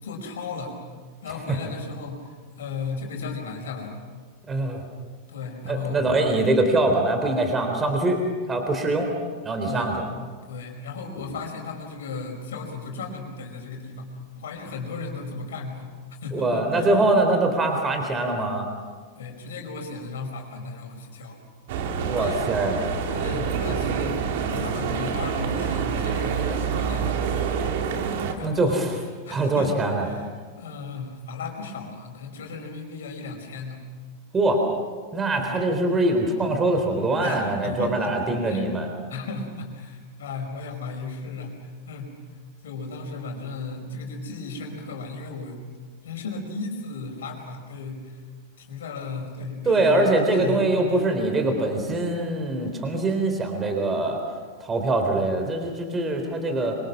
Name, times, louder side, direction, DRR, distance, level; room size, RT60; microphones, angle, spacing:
voice 1, 0.0-0.8 1.2-4.0 5.3-6.0 9.6-9.9 10.5-14.1 14.3-15.9 16.2-16.9 19.1-21.4 22.0-22.4 23.1-27.7 28.3-28.9 29.2-30.3 30.6-33.8 35.4-35.6 37.2-38.1 38.4-38.8 39.1-42.2 42.6-45.6 46.0-48.2 48.6-51.0, left 4 dB, 60° left, 2 dB, 5.3 m, -35 dB
voice 2, 4.5-4.8 5.6-8.2 8.5-9.1 9.4-10.1 16.3-18.7 22.0-22.9 28.4-29.0 29.3-30.1 34.3-34.6 35.1-38.9 49.7-54.2 54.6-56.8, right 2 dB, 20° right, 4 dB, 3.9 m, -23 dB
sound 1, 21.7-28.3, right 6 dB, 50° right, 2.5 m, -27 dB
26.5 x 25.5 x 6.2 m, 1.5 s
figure-of-eight pair, 90°, 0 cm